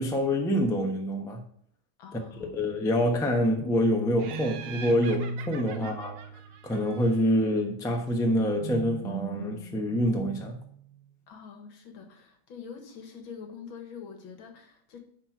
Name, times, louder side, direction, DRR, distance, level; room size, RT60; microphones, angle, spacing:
voice 1, 0.0-1.4 2.1-6.1 6.6-10.6, equal, 5° left, 2 dB, 0.5 m, -26 dB
voice 2, 2.0-2.6 5.7-5.9 11.3-15.0, left 6 dB, 80° left, 5 dB, 2.1 m, -45 dB
sound 1, 3.9-7.0 8.2-11.1, right 5 dB, 70° right, 0.4 m, -39 dB
Laughter, 4.2-7.5, right 7 dB, 90° right, 1.7 m, -45 dB
10.5 x 4.4 x 4.6 m, 0.65 s
omnidirectional pair, 2.2 m